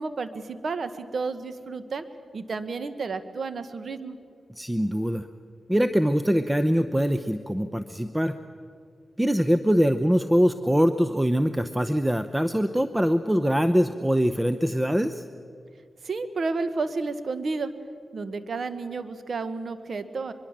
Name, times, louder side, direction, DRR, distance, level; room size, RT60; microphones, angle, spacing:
voice 1, 0.0-2.1 2.3-4.2 16.0-17.7 18.1-20.3, right 4 dB, 65° right, 11 dB, 1.4 m, -31 dB
voice 2, 4.6-5.3 5.7-8.3 9.2-15.2, equal, 10° right, 10 dB, 0.8 m, -23 dB
23.0 x 23.0 x 7.4 m, 2.3 s
cardioid pair, 60°, 0 cm